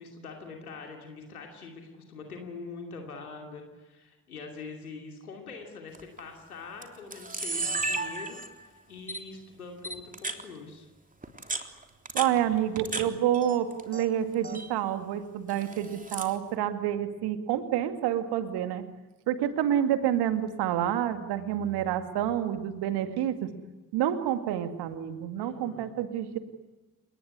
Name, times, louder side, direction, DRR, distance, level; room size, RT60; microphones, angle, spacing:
voice 1, 0.0-10.9 25.4-25.9, left 4 dB, 85° left, 2 dB, 2.7 m, -44 dB
Camera, 5.9-6.2 6.8-6.9 7.1-8.7 9.1-9.2 9.8-10.4 11.2-13.0 13.3-14.1 14.3-14.7 15.5-16.4, right 3 dB, 20° right, 3.5 m, -34 dB
voice 2, 12.1-18.8 19.3-23.5 23.9-26.4, right 10 dB, 65° right, 9 dB, 2.3 m, -28 dB
30.0 x 19.5 x 9.7 m, 1.2 s
figure-of-eight pair, 40°, 43 cm